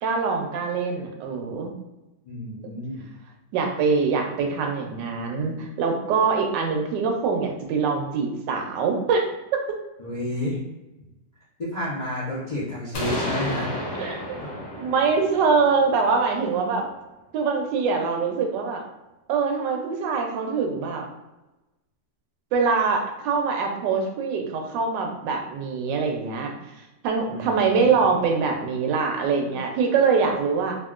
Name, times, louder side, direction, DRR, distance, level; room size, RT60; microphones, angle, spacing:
voice 1, 0.0-1.7 3.5-9.2 9.5-9.6 14.0-14.4 14.8-16.9 17.3-18.8 19.3-21.0 22.5-26.5 27.0-30.8, right 5 dB, 85° right, 3 dB, 1.3 m, -24 dB
voice 2, 2.2-3.1 10.0-10.6 11.6-13.7 14.4-14.5 27.3-27.9, left 1 dB, 50° left, -8 dB, 0.5 m, -31 dB
sound 1, 12.9-16.7, left 1 dB, 85° left, 1.4 m, -32 dB
3.6 x 2.3 x 2.4 m, 1.0 s
omnidirectional pair, 1.9 m